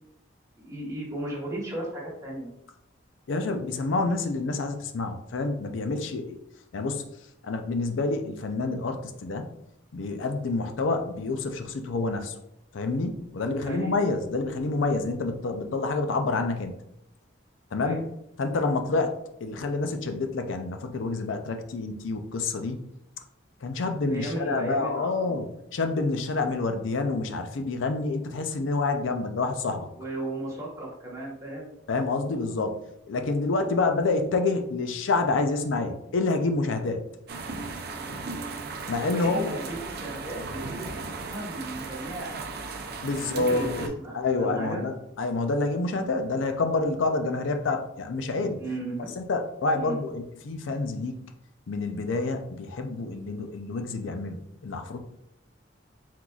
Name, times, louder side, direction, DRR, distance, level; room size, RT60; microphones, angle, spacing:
voice 1, 0.6-2.5 13.6-13.9 17.8-18.0 24.1-25.4 30.0-31.7 39.0-42.5 43.2-44.8 48.5-49.1 49.7-50.0, right 1 dB, 15° right, -4 dB, 1.2 m, -35 dB
voice 2, 3.3-6.4 6.7-7.0 7.4-9.5 9.9-12.3 12.7-16.8 17.7-18.0 18.4-19.2 19.4-22.8 23.6-25.5 25.7-29.9 31.9-32.7 33.1-37.0 38.9-39.6 43.0-43.9 44.1-48.6 49.2-51.2 51.7-55.0, left 3 dB, 85° left, 6 dB, 0.5 m, -28 dB
sound 1, 37.3-43.9, right 3 dB, 55° right, 0.5 m, -36 dB
4.5 x 3.9 x 2.3 m, 0.79 s
head